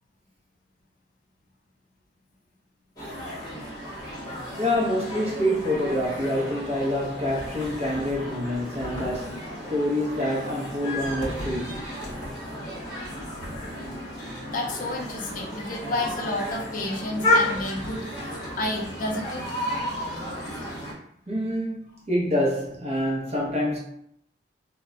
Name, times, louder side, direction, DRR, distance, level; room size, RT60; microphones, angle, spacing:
sound 1, 3.0-20.9, left 1 dB, 20° left, 0.8 m, -32 dB
voice 1, 4.6-11.8 21.3-23.8, left 1 dB, 35° right, 0.5 m, -26 dB
voice 2, 14.5-18.1 18.6-19.6, left 2 dB, 45° left, 0.5 m, -30 dB
2.1 x 2.0 x 3.6 m
head